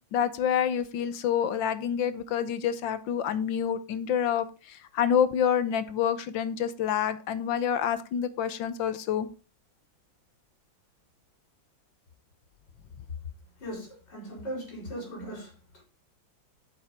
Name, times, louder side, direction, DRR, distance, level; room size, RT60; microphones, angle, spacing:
voice 1, 0.1-9.3, left 8 dB, 80° left, 1.6 m, -27 dB
voice 2, 13.6-15.8, right 1 dB, 60° left, 4.9 m, -39 dB
7.9 x 7.4 x 5.1 m
omnidirectional pair, 2.1 m